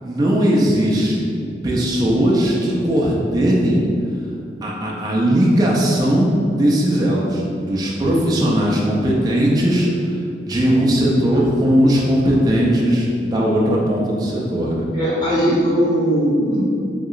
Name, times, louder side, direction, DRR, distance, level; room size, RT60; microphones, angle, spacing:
voice 1, 0.0-1.3 1.6-3.9 4.6-9.9 10.4-14.9, equal, 20° right, -4 dB, 0.3 m, -18 dB
voice 2, 14.9-16.6, equal, 25° left, -10 dB, 0.8 m, -18 dB
2.8 x 2.8 x 2.4 m, 2.4 s
head